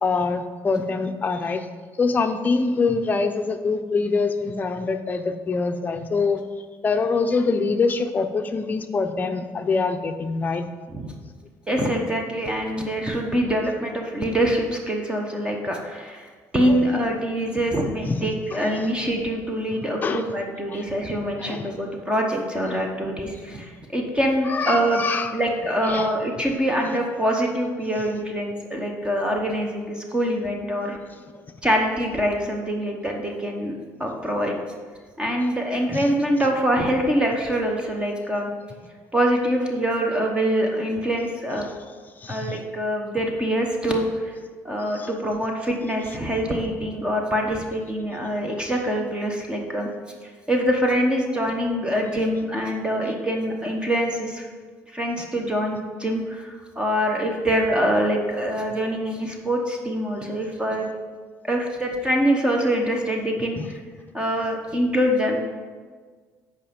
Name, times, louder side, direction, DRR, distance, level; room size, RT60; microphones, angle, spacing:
voice 1, 0.0-1.7 2.0-6.4 6.8-10.7 16.7-16.8 18.1-18.2 18.5-18.9 20.0-20.2 20.7-20.8 21.4-21.7 24.4-25.4 25.9-26.2 35.9-36.1 42.2-42.6 44.9-45.1 63.6-63.7, left 4 dB, 25° left, 7 dB, 0.6 m, -24 dB
voice 2, 11.7-16.3 16.5-25.0 25.3-31.0 31.6-34.5 35.2-38.5 39.1-41.7 42.3-44.3 44.6-49.9 50.5-54.5 54.9-60.9 61.4-63.8 64.1-65.4, equal, 15° right, 1 dB, 0.9 m, -24 dB
8.3 x 5.0 x 5.2 m, 1.5 s
cardioid pair, 130°, 7 cm